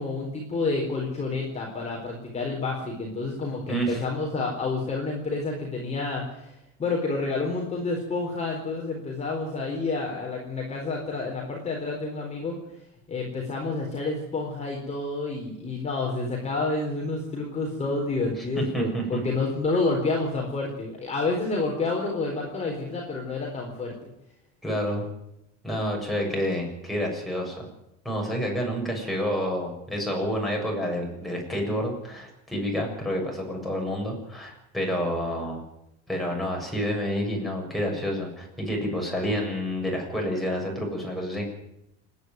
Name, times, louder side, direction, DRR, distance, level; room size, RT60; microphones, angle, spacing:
voice 1, 0.0-12.6 13.1-23.9, left 3 dB, 20° left, -1 dB, 4.1 m, -29 dB
voice 2, 3.7-4.0 18.4-19.2 24.6-25.1 25.6-27.7 28.1-35.6 36.1-41.5, equal, ahead, -2 dB, 7.0 m, -29 dB
29.0 x 10.0 x 9.3 m, 0.83 s
cardioid pair, 150°, 30 cm